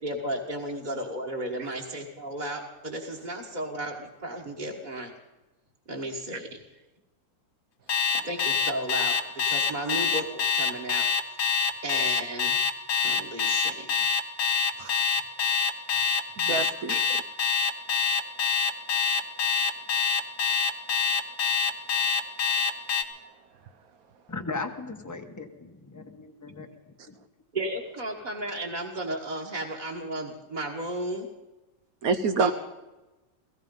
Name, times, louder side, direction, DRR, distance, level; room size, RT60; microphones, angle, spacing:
voice 1, 0.0-5.1 5.9-6.5 8.1-9.1 9.4-11.1 11.8-12.6 13.0-13.9 16.5-16.7 27.5-31.3 32.4-32.5, right 1 dB, 25° right, -2 dB, 1.5 m, -34 dB
Alarm, 7.9-23.0, left 6 dB, 65° left, 1.6 m, -25 dB
voice 2, 16.4-17.0 32.0-32.5, right 4 dB, 60° right, 10 dB, 1.0 m, -27 dB
voice 3, 24.3-27.2, left 3 dB, 10° left, 4 dB, 1.0 m, -38 dB
17.0 x 15.0 x 5.4 m, 1.1 s
omnidirectional pair, 2.0 m